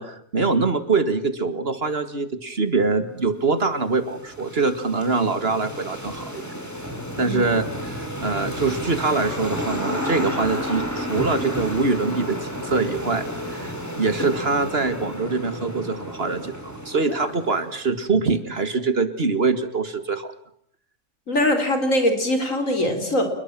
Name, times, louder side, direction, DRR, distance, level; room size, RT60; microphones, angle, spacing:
voice 1, 0.0-6.4 7.2-20.3, right 4 dB, 50° right, 11 dB, 2.1 m, -24 dB
sound 1, 3.3-17.9, equal, 10° left, 5.2 m, -31 dB
voice 2, 21.3-23.2, left 1 dB, 85° left, 6 dB, 4.8 m, -22 dB
28.0 x 21.5 x 7.5 m, 0.64 s
omnidirectional pair, 1.3 m